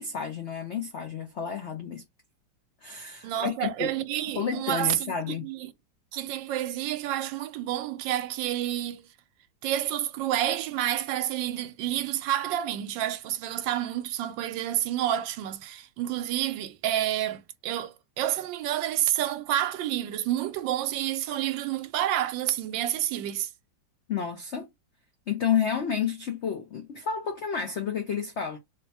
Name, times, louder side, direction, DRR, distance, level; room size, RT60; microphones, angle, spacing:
voice 1, 0.0-2.0 2.8-4.0 4.3-5.5 24.1-24.7 25.3-28.6, left 7 dB, 75° left, 0.6 m, -30 dB
voice 2, 3.2-5.7 6.1-9.0 9.6-23.5, right 12 dB, 80° right, 1.3 m, -29 dB
3.4 x 2.2 x 4.0 m
omnidirectional pair, 2.0 m